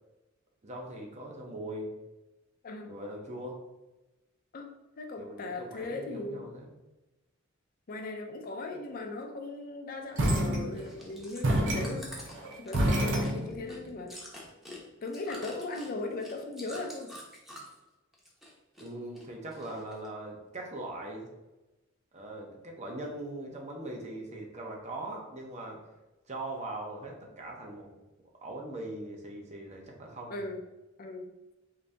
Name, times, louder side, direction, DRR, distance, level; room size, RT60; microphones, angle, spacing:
voice 1, 0.6-1.9 2.9-3.6 5.2-6.7 18.8-21.3 22.1-25.8 26.3-27.9 28.4-30.4, right 1 dB, 35° right, 0 dB, 0.7 m, -41 dB
voice 2, 2.6-2.9 4.5-6.4 7.9-12.1 12.6-14.2 15.0-17.2 30.3-30.6 31.0-31.3, left 2 dB, 45° left, 4 dB, 0.5 m, -38 dB
sound 1, 10.2-11.1 11.4-13.8, right 1 dB, 65° right, 0.7 m, -28 dB
Chewing mastication, 10.8-17.8 18.1-18.9 19.1-20.1 20.6-20.7, equal, ahead, 0.7 m, -47 dB
3.9 x 2.7 x 3.3 m, 1.0 s
head